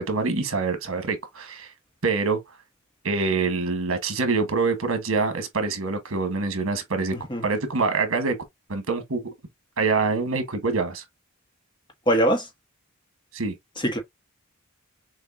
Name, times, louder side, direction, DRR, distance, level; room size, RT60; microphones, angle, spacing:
voice 1, 0.0-1.7 2.0-2.4 3.0-7.1 7.4-8.4 8.7-9.3 9.8-11.0 13.3-13.5, right 4 dB, 85° right, 1.3 m, -25 dB
voice 2, 12.1-12.5 13.8-14.0, right 1 dB, 25° left, 1.3 m, -21 dB
6.3 x 2.7 x 2.7 m
head